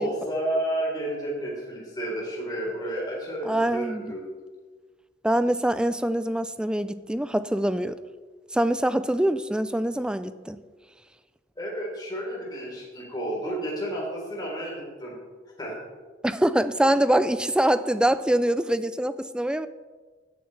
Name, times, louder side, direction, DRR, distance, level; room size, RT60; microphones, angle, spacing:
voice 1, 0.0-4.2 11.6-15.2 15.6-15.8, right 1 dB, 20° left, -4 dB, 3.7 m, -31 dB
voice 2, 3.4-4.2 5.2-8.0 8.5-10.6 16.2-19.7, right 1 dB, 5° right, 13 dB, 0.3 m, -24 dB
16.5 x 9.0 x 3.3 m, 1.4 s
head